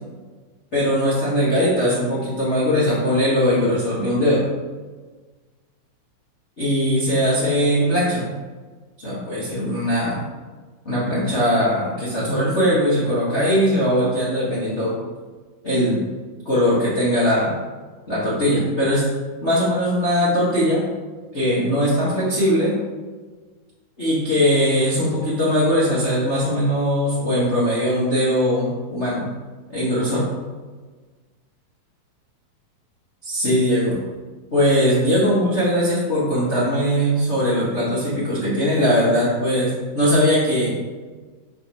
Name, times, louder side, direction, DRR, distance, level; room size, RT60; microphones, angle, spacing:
voice 1, 0.7-4.4 6.6-8.3 9.0-10.2 10.8-14.9 15.6-16.0 16.4-17.5 18.1-19.0 19.4-20.8 21.3-22.7 24.0-29.3 29.7-30.3 33.2-34.0 34.5-40.8, equal, 55° left, -9 dB, 0.7 m, -20 dB
5.0 x 4.9 x 6.1 m, 1.4 s
omnidirectional pair, 4.1 m